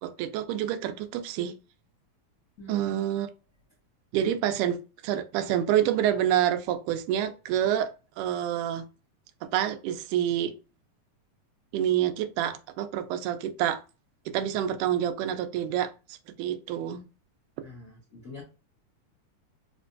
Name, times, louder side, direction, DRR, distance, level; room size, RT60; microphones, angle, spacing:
voice 1, 0.0-1.6 2.7-3.3 4.1-7.9 8.2-8.9 9.4-10.6 11.7-13.8 14.3-17.0, right 11 dB, 90° right, 2.1 m, -27 dB
voice 2, 2.6-3.0 17.6-18.4, left 1 dB, 75° left, 0.7 m, -45 dB
5.0 x 2.2 x 2.6 m
omnidirectional pair, 3.5 m